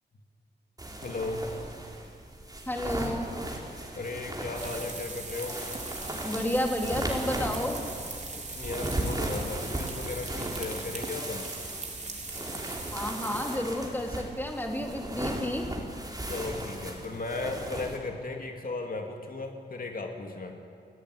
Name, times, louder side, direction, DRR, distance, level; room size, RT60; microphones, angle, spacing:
sound 1, 0.8-18.0, right 1 dB, 20° right, 4.2 m, -37 dB
voice 1, 1.0-1.5 3.9-5.6 8.3-11.5 16.3-20.5, left 3 dB, 50° left, 2 dB, 2.5 m, -36 dB
voice 2, 2.7-3.3 6.2-7.8 12.9-15.7, left 1 dB, 10° left, 1 dB, 3.2 m, -31 dB
sound 2, 4.5-13.6, right 3 dB, 40° right, 3.8 m, -40 dB
30.0 x 16.5 x 9.7 m, 2.3 s
wide cardioid pair, 115°, 18 cm